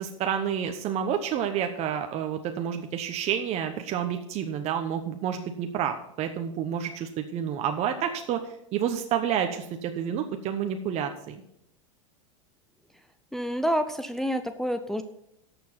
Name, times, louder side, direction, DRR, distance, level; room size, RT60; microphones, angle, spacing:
voice 1, 0.0-11.4, right 8 dB, 40° right, 6 dB, 1.0 m, -29 dB
voice 2, 13.3-15.0, equal, ahead, 7 dB, 0.6 m, -28 dB
11.5 x 7.0 x 5.8 m, 0.78 s
hypercardioid pair, 110°, 17 cm